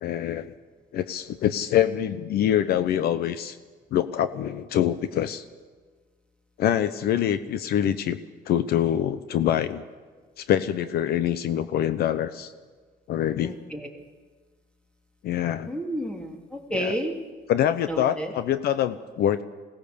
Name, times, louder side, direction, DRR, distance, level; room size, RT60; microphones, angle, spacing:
voice 1, 0.0-0.5 0.9-3.6 3.9-5.4 6.6-8.2 8.5-9.8 10.4-12.5 13.1-13.5 15.2-15.7 16.7-17.0 17.5-19.4, left 10 dB, 70° left, 13 dB, 0.8 m, -25 dB
voice 2, 13.4-13.9 15.7-17.1 17.9-18.3, equal, 5° left, 2 dB, 2.9 m, -31 dB
21.5 x 17.5 x 6.9 m, 1.5 s
cardioid pair, 110°, 17 cm